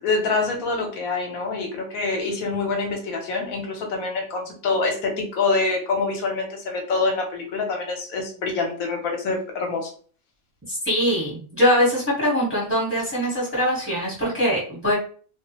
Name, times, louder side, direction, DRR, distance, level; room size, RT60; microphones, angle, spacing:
voice 1, 0.0-9.9, left 3 dB, 80° left, 3 dB, 1.1 m, -26 dB
voice 2, 10.7-14.9, equal, 10° right, -7 dB, 1.0 m, -22 dB
2.3 x 2.3 x 2.8 m, 0.43 s
omnidirectional pair, 1.5 m